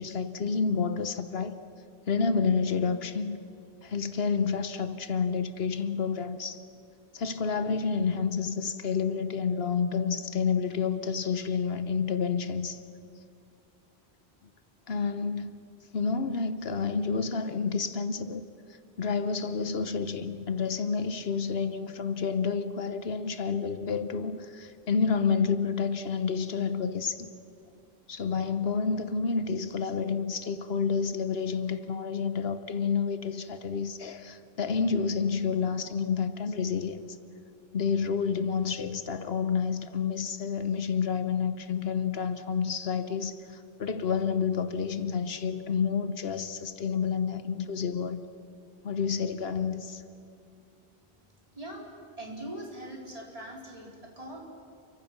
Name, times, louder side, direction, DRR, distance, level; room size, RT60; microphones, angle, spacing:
voice 1, 0.0-1.6 2.1-3.4 3.8-6.6 7.1-12.8 14.9-15.6 15.9-18.4 19.0-27.3 28.1-37.2 37.7-48.2 48.8-50.0, left 5 dB, 70° left, 1.2 m, -29 dB
voice 2, 51.5-51.9 52.2-54.5, right 1 dB, 35° right, 4.1 m, -41 dB
29.0 x 24.0 x 6.0 m
omnidirectional pair, 1.1 m